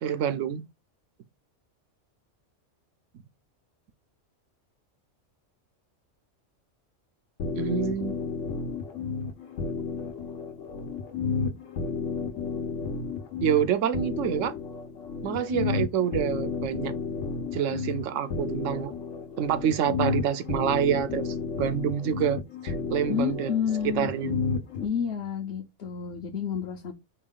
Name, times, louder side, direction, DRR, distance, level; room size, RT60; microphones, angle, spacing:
voice 1, 0.0-0.7 7.6-8.2 13.4-14.5 15.2-16.9 17.5-18.9 19.4-23.5 23.8-24.4, right 9 dB, 85° right, 1.0 m, -27 dB
sound 1, 7.4-24.9, left 5 dB, 85° left, 1.2 m, -32 dB
voice 2, 23.1-24.1 24.8-26.9, left 7 dB, 65° left, 1.0 m, -30 dB
4.3 x 2.3 x 3.6 m
omnidirectional pair, 1.3 m